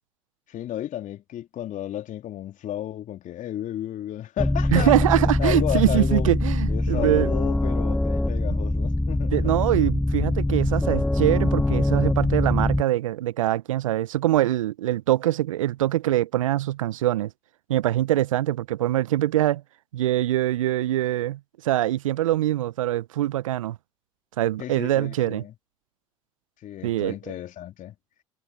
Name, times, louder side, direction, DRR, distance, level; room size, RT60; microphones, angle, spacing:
voice 1, 0.5-6.3 6.7-9.5 10.6-10.7 24.6-25.5 26.6-27.9, left 12 dB, 50° left, 3.1 m, -33 dB
sound 1, 4.4-12.8, left 1 dB, 5° left, 0.7 m, -23 dB
voice 2, 4.7-7.3 9.3-17.3 17.7-19.6 19.9-23.8 24.4-25.4 26.8-27.1, right 14 dB, 80° right, 0.8 m, -23 dB
hypercardioid pair, 60°, 17 cm